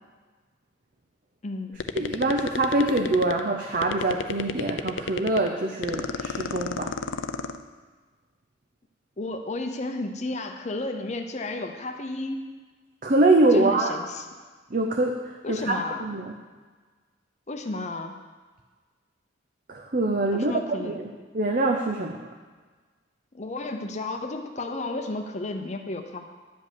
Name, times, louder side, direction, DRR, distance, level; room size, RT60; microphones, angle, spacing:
voice 1, 1.4-1.8 9.2-12.5 13.5-14.2 15.4-16.1 17.5-18.2 20.3-21.0 23.3-26.3, left 2 dB, 35° left, 5 dB, 0.7 m, -32 dB
sound 1, 1.8-3.5 3.7-5.5 5.8-7.6, left 5 dB, 75° left, 0.5 m, -29 dB
voice 2, 1.9-6.9 13.0-13.9 14.7-16.3 19.7-22.2, right 2 dB, 45° right, 2 dB, 0.7 m, -24 dB
11.0 x 5.3 x 8.3 m, 1.4 s
head